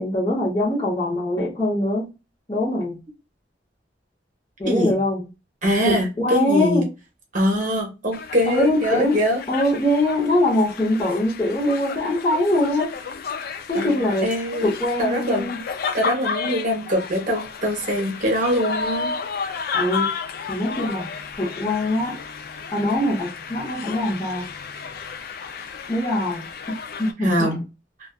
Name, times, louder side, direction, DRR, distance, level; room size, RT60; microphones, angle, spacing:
voice 1, 0.0-2.1 2.5-3.0 4.6-5.2 5.8-6.9 8.5-9.2 9.5-12.9 13.7-14.3 14.6-15.6 19.7-20.1 20.5-21.1 21.4-22.2 22.7-24.4 25.9-26.4 27.0-27.6, left 1 dB, 20° left, 0.8 m, -22 dB
voice 2, 5.6-6.8 7.3-9.4 13.7-14.7 15.0-15.5 15.9-19.1 27.2-27.6, equal, 45° right, 0.9 m, -23 dB
sound 1, 8.1-27.1, left 5 dB, 55° left, 0.4 m, -32 dB
2.4 x 2.3 x 2.3 m
head